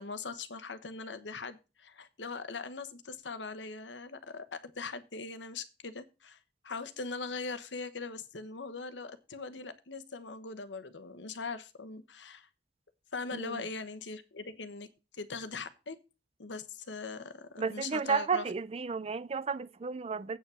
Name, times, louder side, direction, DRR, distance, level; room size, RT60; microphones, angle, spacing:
voice 1, 0.0-6.4 6.6-12.5 13.1-14.9 15.2-16.0 16.4-18.5, left 4 dB, 90° left, 1.1 m, -41 dB
voice 2, 13.3-13.6 17.6-20.4, right 5 dB, 35° right, 0.4 m, -33 dB
8.4 x 5.8 x 6.9 m
head